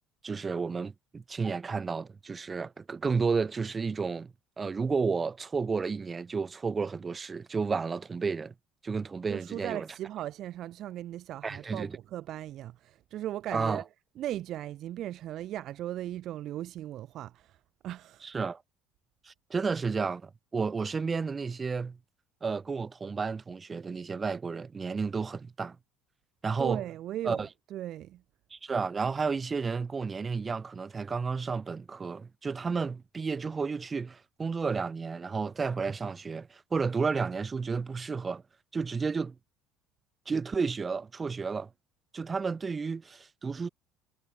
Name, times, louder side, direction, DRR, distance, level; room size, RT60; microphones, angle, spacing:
voice 1, 0.2-4.3 4.6-8.5 8.8-9.9 11.4-12.0 13.5-13.8 18.2-18.6 19.2-22.0 22.4-25.8 26.4-26.8 27.2-27.5 28.5-38.4 38.7-39.4 40.3-41.7 42.1-43.7, right 5 dB, 30° right, 0.9 m, -32 dB
voice 2, 9.3-13.9 14.1-17.6 17.8-18.3 26.6-28.2, right 13 dB, 55° right, 0.8 m, -37 dB
hypercardioid pair, 60°, 0 cm